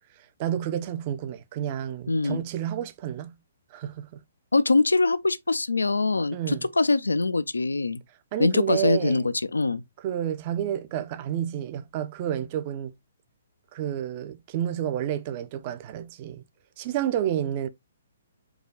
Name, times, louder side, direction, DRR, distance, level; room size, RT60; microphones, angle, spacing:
voice 1, 0.4-3.3 3.7-4.2 6.3-6.7 8.3-9.3 10.0-12.9 13.7-16.4 16.8-17.7, right 10 dB, 35° right, 0.5 m, -30 dB
voice 2, 2.1-2.4 4.5-8.0 8.4-9.8, left 3 dB, 80° left, 0.4 m, -23 dB
4.7 x 2.3 x 3.8 m
figure-of-eight pair, 125°, 0 cm